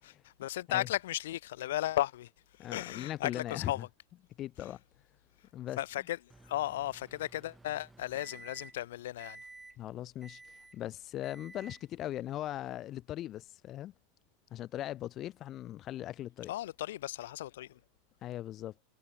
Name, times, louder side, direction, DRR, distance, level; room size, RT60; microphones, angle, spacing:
voice 1, 0.2-3.9 5.8-6.2 6.4-9.4 16.5-17.8, left 14 dB, 65° left, 3.7 m, -35 dB
voice 2, 2.6-3.8 4.4-4.8 5.5-5.8 9.8-13.9 14.5-16.5 18.2-18.7, left 13 dB, 40° left, 2.6 m, -39 dB
Microwave oven, 6.3-8.9 9.2-9.8 10.2-10.8 11.2-11.8, right 2 dB, 10° right, 5.2 m, -53 dB
figure-of-eight pair, 85°, 0 cm